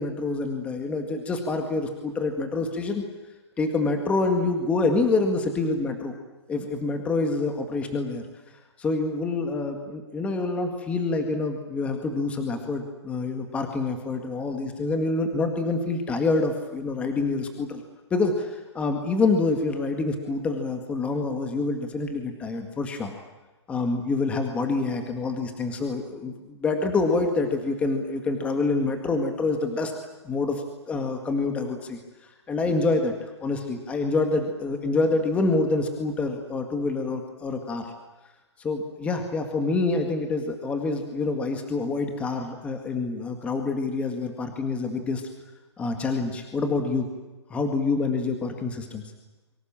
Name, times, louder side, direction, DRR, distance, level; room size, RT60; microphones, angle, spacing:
voice 1, 0.0-3.0 3.6-6.1 6.5-8.2 8.8-17.8 18.1-23.1 23.7-29.9 30.2-32.0 32.5-33.1 33.4-37.9 38.6-45.2 45.8-47.1 47.5-49.0, left 3 dB, 10° left, 5 dB, 2.0 m, -26 dB
28.5 x 24.0 x 7.6 m, 1.1 s
hypercardioid pair, 165°, 15 cm